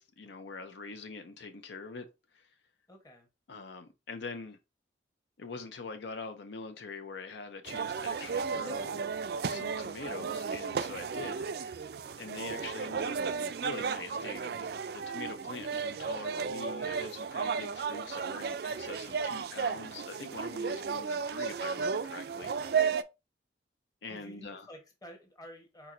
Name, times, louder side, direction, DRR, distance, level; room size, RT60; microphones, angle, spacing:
voice 1, 0.0-2.1 2.3-2.5 3.5-4.6 5.4-9.0 9.5-11.8 12.2-13.2 13.6-14.7 14.9-22.8 24.0-24.7, left 4 dB, 75° left, 0.5 m, -44 dB
voice 2, 2.9-3.3 20.9-21.1 24.1-25.9, equal, 20° left, 1.0 m, -51 dB
sound 1, 7.7-23.0, right 6 dB, 55° right, 0.3 m, -34 dB
4.5 x 4.1 x 2.5 m
head